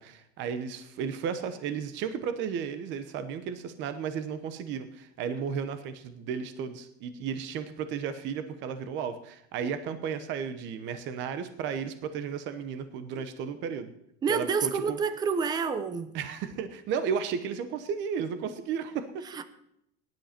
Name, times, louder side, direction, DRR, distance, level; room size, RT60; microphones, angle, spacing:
voice 1, 0.0-13.9 14.3-15.0 16.1-19.2, right 7 dB, 35° right, 10 dB, 0.9 m, -34 dB
voice 2, 14.2-16.1 19.3-19.5, right 5 dB, 10° right, 12 dB, 0.5 m, -28 dB
18.0 x 11.0 x 4.4 m, 0.77 s
cardioid pair, 180°, 34 cm